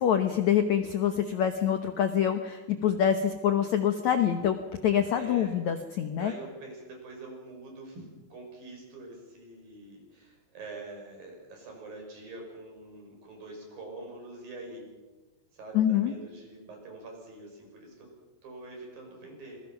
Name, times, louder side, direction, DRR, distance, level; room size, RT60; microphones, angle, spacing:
voice 1, 0.0-4.6 4.8-6.3 15.7-16.1, left 9 dB, 70° left, 7 dB, 1.8 m, -25 dB
voice 2, 5.2-5.6 6.2-8.1 8.3-14.9 15.5-18.1 18.4-19.6, right 2 dB, 60° right, 1 dB, 7.5 m, -45 dB
26.5 x 21.5 x 5.9 m, 1.2 s
omnidirectional pair, 4.6 m